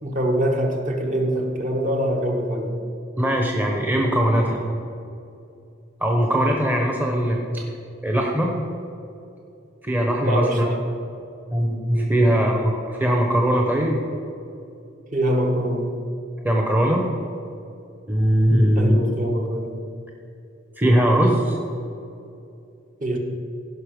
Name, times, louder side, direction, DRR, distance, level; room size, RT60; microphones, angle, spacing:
voice 1, 0.0-2.7 10.2-10.8 12.2-12.4 15.1-15.9 18.8-19.8 23.0-23.2, right 1 dB, 40° right, 1 dB, 1.2 m, -24 dB
voice 2, 3.2-4.6 6.0-7.6 8.0-8.5 9.8-10.7 11.5-14.0 16.4-17.1 18.1-19.0 20.8-21.6, equal, 10° right, 0 dB, 0.9 m, -20 dB
16.0 x 5.6 x 5.1 m, 2.6 s
head